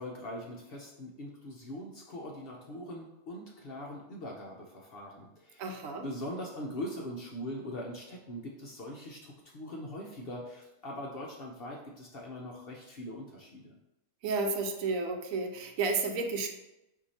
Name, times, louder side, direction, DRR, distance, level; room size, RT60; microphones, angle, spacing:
voice 1, 0.0-5.8 6.0-13.7, left 1 dB, 55° left, -1 dB, 0.7 m, -42 dB
voice 2, 5.6-6.1 14.2-16.5, right 4 dB, 75° right, 4 dB, 1.0 m, -32 dB
4.5 x 2.7 x 4.0 m, 0.90 s
omnidirectional pair, 1.5 m